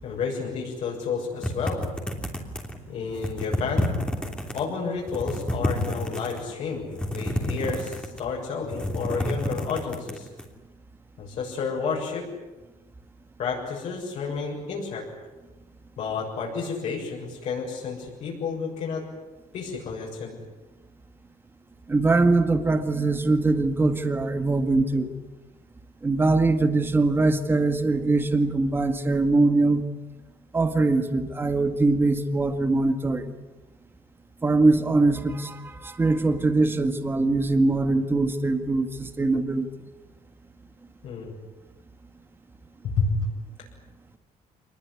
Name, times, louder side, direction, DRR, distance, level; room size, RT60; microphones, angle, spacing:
voice 1, 0.0-1.8 2.9-3.9 4.5-6.9 7.1-10.3 11.2-12.3 13.4-15.1 16.0-19.1 19.5-20.4 41.0-41.3 42.8-43.3, left 5 dB, 60° left, -3 dB, 6.8 m, -30 dB
sound 1, 1.4-2.8 3.1-4.6 5.0-6.4 6.9-8.3 8.6-10.4, left 1 dB, 5° left, 3.1 m, -29 dB
voice 2, 21.9-25.1 26.0-29.9 30.5-33.3 34.4-39.7, right 3 dB, 15° right, 8 dB, 1.8 m, -22 dB
27.0 x 20.5 x 9.8 m, 1.1 s
cardioid pair, 170°, 14 cm